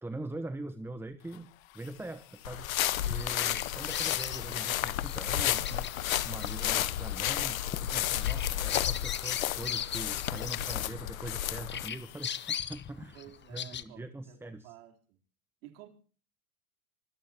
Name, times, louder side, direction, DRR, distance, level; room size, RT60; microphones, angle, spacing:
voice 1, 0.0-2.7 3.0-5.9 6.2-13.2 13.5-14.7, right 2 dB, 5° right, 1.1 m, -42 dB
sound 1, 0.8-13.5, left 16 dB, 70° left, 1.7 m, -49 dB
sound 2, 2.4-11.9, left 12 dB, 90° left, 0.9 m, -32 dB
Bird vocalization bird call bird song, 2.9-11.4 11.7-13.8, left 9 dB, 25° left, 1.2 m, -39 dB
voice 2, 13.1-15.2 15.6-15.9, right 13 dB, 70° right, 3.8 m, -52 dB
25.0 x 18.0 x 2.9 m
hypercardioid pair, 95°, 40 cm